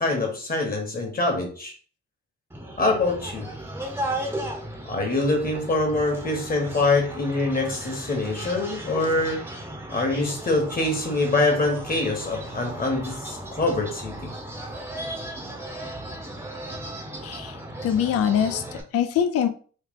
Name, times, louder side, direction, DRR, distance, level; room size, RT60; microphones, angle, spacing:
voice 1, 0.0-1.7 2.8-3.5 4.9-9.4 9.9-14.3, left 2 dB, 30° left, 2 dB, 1.3 m, -24 dB
sound 1, 2.5-18.8, right 1 dB, 10° right, 0.8 m, -36 dB
voice 2, 17.2-19.5, left 9 dB, 50° left, 7 dB, 0.4 m, -24 dB
3.2 x 2.3 x 3.6 m, 0.41 s
cardioid pair, 90°, 30 cm